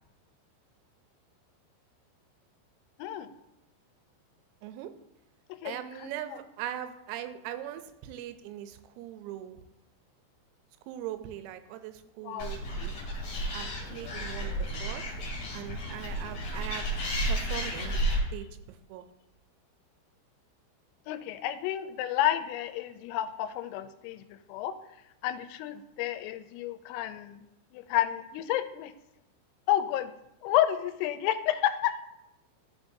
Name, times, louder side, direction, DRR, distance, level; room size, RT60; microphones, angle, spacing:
voice 1, 4.6-4.9 5.6-9.6 10.9-13.0 13.5-15.0 15.5-16.9 17.3-18.0 18.3-19.1 25.7-25.8, right 11 dB, 85° right, 9 dB, 3.2 m, -40 dB
voice 2, 5.6-6.4 12.2-12.5 21.1-24.2 24.5-24.7 25.2-27.4 27.7-28.9 29.7-30.1 30.4-31.9, left 12 dB, 90° left, 10 dB, 3.2 m, -30 dB
Animal, 12.4-18.2, right 1 dB, 45° left, 2.2 m, -32 dB
13.0 x 5.1 x 2.7 m, 0.86 s
omnidirectional pair, 5.8 m